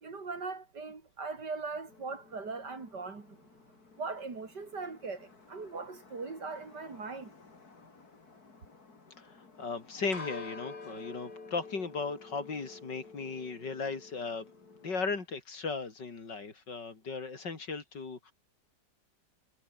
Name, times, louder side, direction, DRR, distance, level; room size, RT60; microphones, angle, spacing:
voice 1, 0.0-3.4 4.0-7.3, right 4 dB, 70° right, 4.0 m, -40 dB
sound 1, 1.9-15.2, left 4 dB, 60° left, 3.8 m, -51 dB
voice 2, 9.2-14.5 14.8-18.3, left 4 dB, 80° left, 3.9 m, -37 dB
omnidirectional pair, 1.9 m